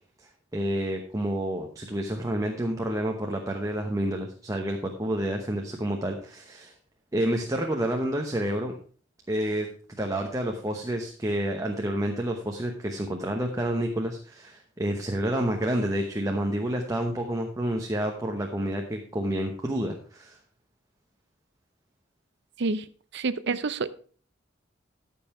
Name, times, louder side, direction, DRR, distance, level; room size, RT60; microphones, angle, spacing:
voice 1, 0.5-6.7 7.1-8.7 9.3-9.7 10.0-20.4, right 1 dB, 15° right, 2 dB, 1.0 m, -29 dB
voice 2, 23.1-23.9, right 3 dB, 60° right, 14 dB, 0.6 m, -28 dB
13.5 x 5.5 x 4.4 m, 0.42 s
head